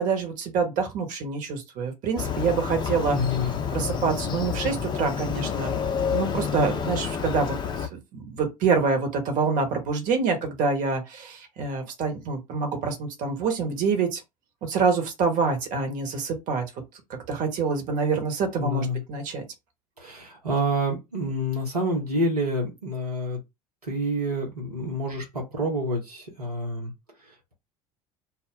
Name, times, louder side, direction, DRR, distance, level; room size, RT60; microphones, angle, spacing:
voice 1, 0.0-3.2 3.7-5.7 6.1-14.2 14.6-16.6 17.3-19.4, right 5 dB, 45° right, 1.0 m, -26 dB
Motorcycle, 2.2-7.9, left 7 dB, 25° left, 0.5 m, -29 dB
voice 2, 3.1-3.6 18.6-19.0 20.0-23.4 23.8-26.9, equal, 90° right, 0.9 m, -28 dB
2.3 x 2.1 x 3.7 m
figure-of-eight pair, 70°, 19 cm